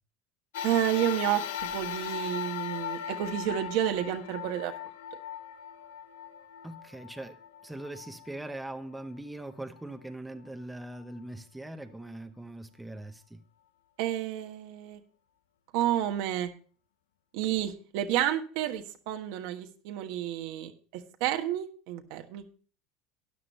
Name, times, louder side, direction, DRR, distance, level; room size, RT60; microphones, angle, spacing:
sound 1, 0.5-9.2 9.8-9.9 11.0-11.1, left 9 dB, 90° left, 1.0 m, -38 dB
voice 1, 0.6-4.7 14.0-15.0 15.7-16.5 17.3-22.4, right 12 dB, 70° right, 1.3 m, -30 dB
voice 2, 6.6-13.4, right 1 dB, 5° right, 0.9 m, -41 dB
13.0 x 9.8 x 3.2 m
supercardioid pair, 115°, 0 cm